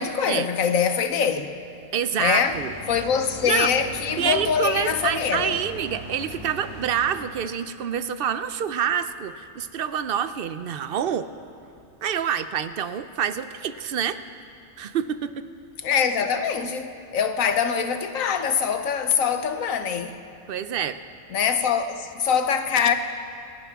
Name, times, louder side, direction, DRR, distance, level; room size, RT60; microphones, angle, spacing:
voice 1, 0.0-1.5 2.2-2.6 2.9-5.5 15.8-20.2 21.3-22.9, left 7 dB, 80° left, 1.2 m, -23 dB
voice 2, 1.9-3.0 3.4-3.7 4.2-11.3 12.0-14.2 14.8-15.4 20.5-21.0, right 8 dB, 60° right, 0.6 m, -27 dB
sound 1, 2.5-7.6, right 1 dB, 20° left, 4.2 m, -40 dB
27.5 x 11.5 x 3.6 m
omnidirectional pair, 1.4 m